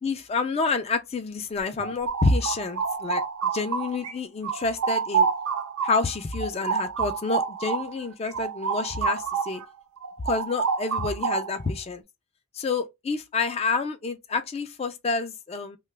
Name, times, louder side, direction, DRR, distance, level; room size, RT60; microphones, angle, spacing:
voice 1, 0.0-3.2 3.5-5.3 5.8-9.6 10.2-12.0 12.5-15.8, left 3 dB, 30° left, 0.3 m, -28 dB
sound 1, 1.6-4.1 4.4-9.7 10.0-11.7, right 6 dB, 85° right, 0.5 m, -28 dB
2.8 x 2.2 x 3.2 m
head